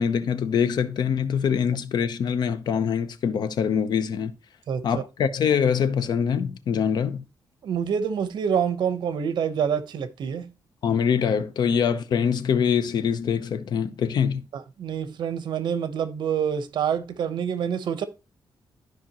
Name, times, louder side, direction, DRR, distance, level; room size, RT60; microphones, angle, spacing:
voice 1, 0.0-4.3 4.8-7.2 10.8-14.4, left 7 dB, 65° left, 0.7 m, -24 dB
voice 2, 4.7-5.0 7.6-10.5 14.5-18.0, right 7 dB, 70° right, 0.9 m, -27 dB
13.0 x 5.1 x 2.9 m
wide cardioid pair, 175°, 8 cm